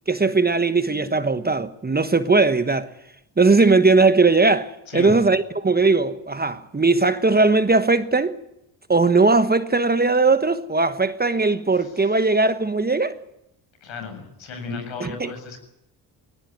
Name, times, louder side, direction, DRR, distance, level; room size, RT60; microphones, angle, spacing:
voice 1, 0.1-2.9 3.4-8.4 8.9-13.2 15.0-15.3, right 3 dB, 20° right, 1.2 m, -19 dB
voice 2, 13.8-15.6, left 4 dB, 65° left, 7.5 m, -34 dB
20.0 x 19.0 x 9.5 m
supercardioid pair, 60°, 49 cm